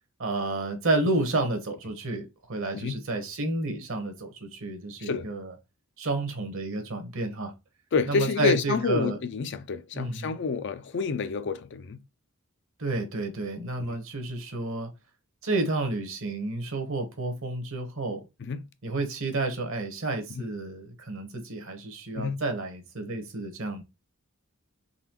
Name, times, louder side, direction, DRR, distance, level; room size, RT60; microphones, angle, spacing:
voice 1, 0.2-5.5 6.0-7.5 8.1-9.2 9.9-10.4 12.8-14.9 15.4-18.2 18.8-23.8, right 2 dB, 60° right, 1.0 m, -30 dB
voice 2, 7.9-12.0 18.5-18.6 22.1-22.4, left 5 dB, 55° left, 0.4 m, -28 dB
4.0 x 3.2 x 3.0 m
head